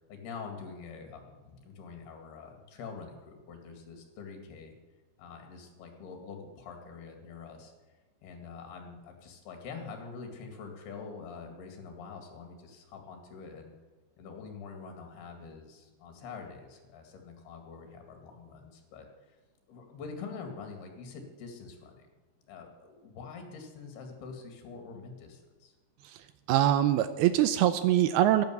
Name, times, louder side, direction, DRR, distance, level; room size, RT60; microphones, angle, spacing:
voice 1, 0.1-4.8 5.2-7.7 8.2-13.7 14.2-19.4 19.7-22.1 22.5-25.7, left 5 dB, 70° left, 4 dB, 4.0 m, -45 dB
voice 2, 26.0-28.4, right 12 dB, 80° right, 12 dB, 2.2 m, -24 dB
12.0 x 10.5 x 8.3 m, 1.2 s
omnidirectional pair, 5.0 m